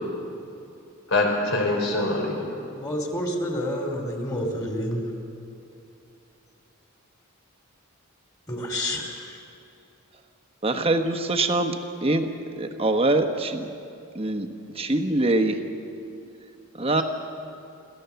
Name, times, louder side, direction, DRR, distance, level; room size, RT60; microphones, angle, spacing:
voice 1, 1.1-2.3, left 2 dB, 65° left, 1 dB, 4.5 m, -23 dB
voice 2, 2.7-5.0 8.5-9.0, equal, 20° left, 1 dB, 2.9 m, -28 dB
voice 3, 10.6-12.3 12.6-13.7 14.1-14.5 14.7-15.6 16.8-17.0, right 2 dB, 25° right, 6 dB, 1.1 m, -23 dB
27.5 x 14.0 x 7.0 m, 2.7 s
head